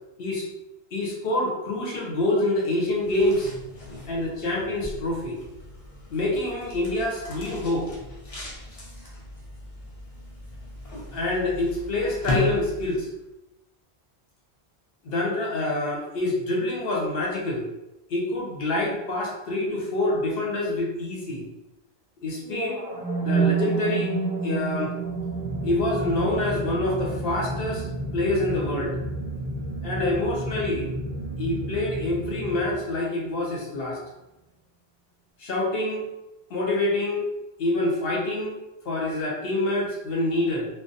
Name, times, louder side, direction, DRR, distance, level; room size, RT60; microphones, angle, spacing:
voice 1, 0.9-3.5 4.1-5.4 6.1-7.9 11.1-13.1 15.0-17.7 18.1-21.4 22.2-22.8 23.2-24.1 24.4-24.9 25.6-27.8 28.1-28.9 29.8-30.9 31.4-34.0 35.4-36.1 36.5-37.3 37.6-38.6 38.8-40.7, left 2 dB, 65° left, -2 dB, 0.8 m, -26 dB
sound 1, 2.9-13.2, left 2 dB, 45° left, 0.5 m, -37 dB
sound 2, 22.4-30.5, right 5 dB, 60° right, 0.6 m, -30 dB
sound 3, 25.0-33.3, right 1 dB, 5° right, 0.7 m, -33 dB
2.3 x 2.0 x 2.6 m, 0.97 s
omnidirectional pair, 1.1 m